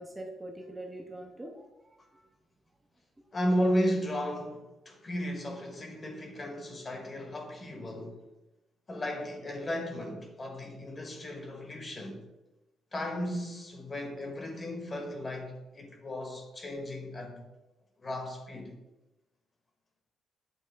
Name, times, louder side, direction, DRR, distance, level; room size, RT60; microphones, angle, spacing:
voice 1, 0.0-2.3, right 1 dB, 15° right, 0.8 m, -44 dB
voice 2, 3.3-8.2 8.9-12.2 12.9-17.4 18.0-18.7, equal, 30° left, 1.2 m, -34 dB
8.2 x 3.4 x 3.4 m
cardioid pair, 90°, 0 cm